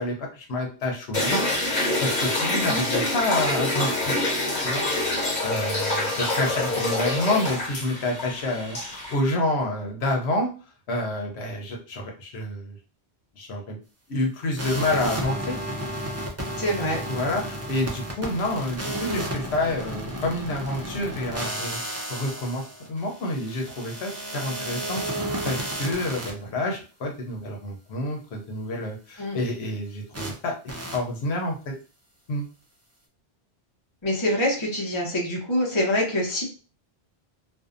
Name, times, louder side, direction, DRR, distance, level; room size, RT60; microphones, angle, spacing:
voice 1, 0.0-1.5 2.0-4.1 4.6-4.8 5.4-10.5 10.9-12.8 13.4-13.8 14.1-15.6 17.1-21.8 22.1-30.5 30.9-31.7 32.3-32.5, left 1 dB, 80° left, 2 dB, 0.9 m, -28 dB
sound 1, 1.1-9.1, left 2 dB, 50° left, 1.2 m, -26 dB
voice 2, 2.5-2.8 16.6-17.0 29.2-29.4 34.0-36.4, left 1 dB, 30° left, -2 dB, 0.8 m, -25 dB
sound 2, 14.6-26.3 30.1-30.3 30.7-31.0, right 1 dB, 25° right, 0.3 m, -32 dB
2.6 x 2.2 x 2.4 m, 0.35 s
omnidirectional pair, 1.1 m